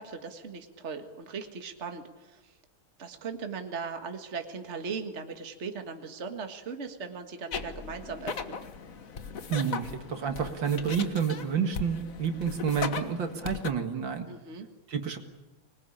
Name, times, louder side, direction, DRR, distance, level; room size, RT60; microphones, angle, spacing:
voice 1, 0.0-2.5 3.0-8.6 14.3-14.7, right 5 dB, 35° right, 6 dB, 2.0 m, -38 dB
sound 1, 7.5-13.7, left 6 dB, 45° left, 1.5 m, -38 dB
voice 2, 9.5-14.3 14.9-15.2, right 7 dB, 70° right, 6 dB, 2.5 m, -29 dB
25.5 x 20.5 x 10.0 m, 1.1 s
omnidirectional pair, 2.2 m